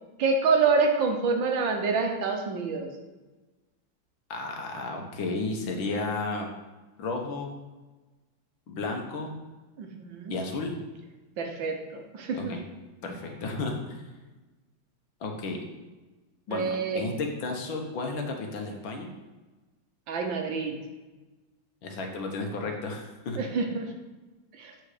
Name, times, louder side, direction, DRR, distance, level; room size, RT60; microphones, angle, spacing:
voice 1, 0.2-2.9 9.8-10.3 11.4-12.5 16.5-17.1 20.1-20.8 23.4-23.9 24.6-24.7, right 4 dB, 70° right, 3 dB, 1.6 m, -27 dB
voice 2, 4.3-6.5 7.0-7.6 8.7-9.4 10.3-10.7 12.3-12.6 13.0-14.0 15.2-15.6 16.5-19.1 21.8-23.4, left 3 dB, 75° left, 2 dB, 1.8 m, -33 dB
8.0 x 4.4 x 4.9 m, 1.2 s
omnidirectional pair, 2.2 m